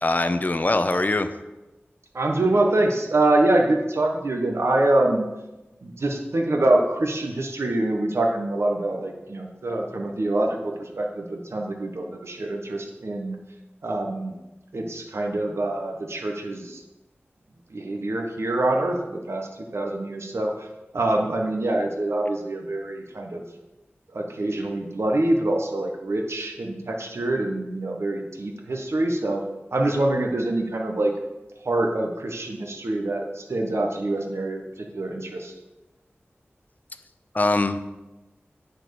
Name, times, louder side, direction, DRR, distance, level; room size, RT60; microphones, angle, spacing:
voice 1, 0.0-1.3 37.3-37.8, left 2 dB, 40° left, 10 dB, 0.7 m, -22 dB
voice 2, 2.1-5.3 5.8-13.4 13.8-14.3 14.7-16.8 17.7-20.5 20.9-23.4 24.1-29.4 29.7-31.1 31.6-34.6 34.9-35.5, right 2 dB, 75° right, 2 dB, 1.2 m, -25 dB
10.5 x 4.5 x 7.0 m, 1.1 s
wide cardioid pair, 65°, 5 cm